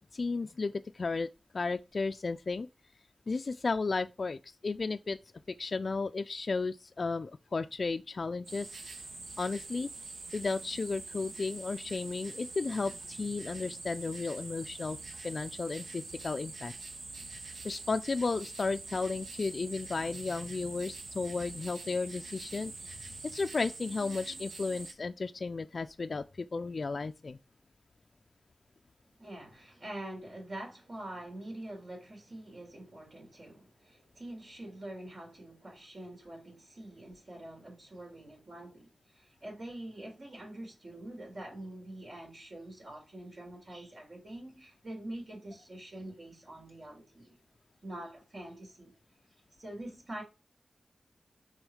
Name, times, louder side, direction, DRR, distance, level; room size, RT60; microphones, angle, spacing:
voice 1, 0.1-1.3 1.5-2.7 3.3-5.2 5.5-8.7 9.4-9.9 10.3-15.0 15.2-16.7 17.6-22.7 23.2-27.4, left 4 dB, 55° left, 0.3 m, -34 dB
sound 1, 8.4-24.9, right 3 dB, 80° right, 1.2 m, -45 dB
voice 2, 29.2-47.4 47.8-48.9 49.6-50.2, right 1 dB, 55° right, 3.2 m, -45 dB
6.2 x 3.8 x 4.9 m
wide cardioid pair, 85°, 0 cm